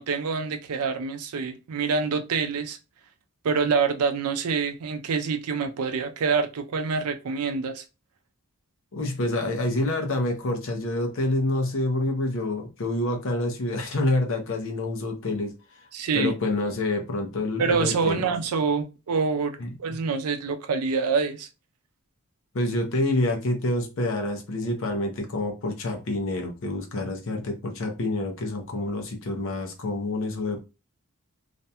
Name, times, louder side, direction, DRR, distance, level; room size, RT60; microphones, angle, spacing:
voice 1, 0.0-2.8 3.4-7.8 15.9-16.4 17.6-21.5, right 5 dB, 85° right, 0.4 m, -26 dB
voice 2, 8.9-15.9 16.1-18.3 19.6-19.7 22.5-30.6, left 2 dB, 60° left, 0.6 m, -27 dB
2.5 x 2.2 x 2.7 m
head